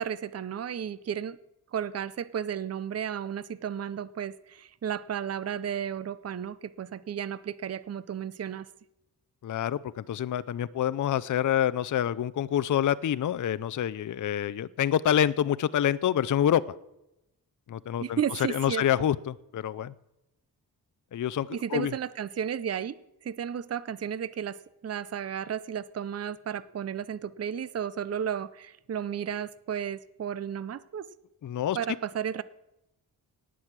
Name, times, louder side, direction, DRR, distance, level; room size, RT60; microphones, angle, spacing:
voice 1, 0.0-1.4 1.7-8.7 18.0-18.8 21.5-24.6 24.8-31.1 31.7-32.4, right 8 dB, 40° right, 17 dB, 0.6 m, -33 dB
voice 2, 9.4-16.6 17.7-19.9 21.1-21.9 31.4-31.8, left 10 dB, 50° left, 15 dB, 0.5 m, -27 dB
18.0 x 6.3 x 8.8 m, 0.89 s
wide cardioid pair, 120°, 39 cm